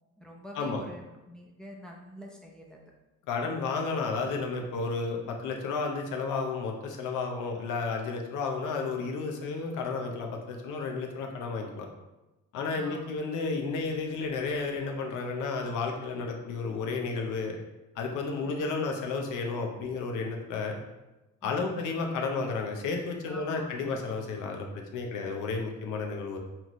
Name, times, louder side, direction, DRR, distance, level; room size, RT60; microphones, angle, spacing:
voice 1, 0.2-2.8 12.7-13.2 18.4-18.9 21.4-21.8 23.3-24.0, equal, ahead, -1 dB, 0.6 m, -46 dB
voice 2, 3.3-11.9 12.5-17.6 18.0-20.8 21.4-26.4, left 4 dB, 90° left, 2 dB, 0.8 m, -32 dB
5.7 x 2.6 x 3.0 m, 1.0 s
cardioid pair, 90°, 30 cm